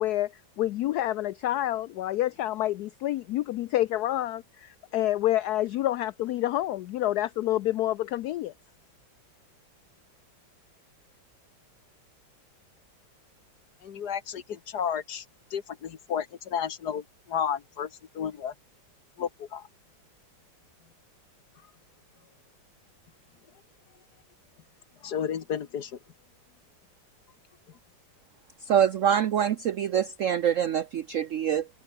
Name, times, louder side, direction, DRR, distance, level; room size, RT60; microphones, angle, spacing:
voice 1, 0.0-8.5, left 14 dB, 75° left, 0.9 m, -28 dB
voice 2, 13.8-15.2 15.5-17.9 18.2-18.5 19.2-19.6 25.0-25.9, left 8 dB, 55° left, 1.7 m, -32 dB
voice 3, 28.6-31.7, right 9 dB, 80° right, 0.7 m, -25 dB
omnidirectional pair, 2.1 m